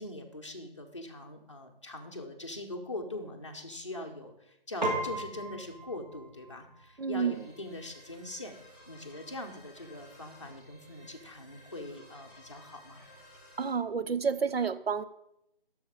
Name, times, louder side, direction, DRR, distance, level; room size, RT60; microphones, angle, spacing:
voice 1, 0.0-8.6 8.9-13.1, left 2 dB, 30° left, 0.6 m, -42 dB
Piano, 4.8-14.4, right 1 dB, 50° right, 1.8 m, -42 dB
voice 2, 7.0-7.4 13.6-15.0, right 6 dB, 85° right, 0.6 m, -30 dB
sound 1, 7.3-13.7, left 1 dB, 5° right, 2.0 m, -56 dB
6.9 x 6.2 x 4.8 m
figure-of-eight pair, 160°, 30 cm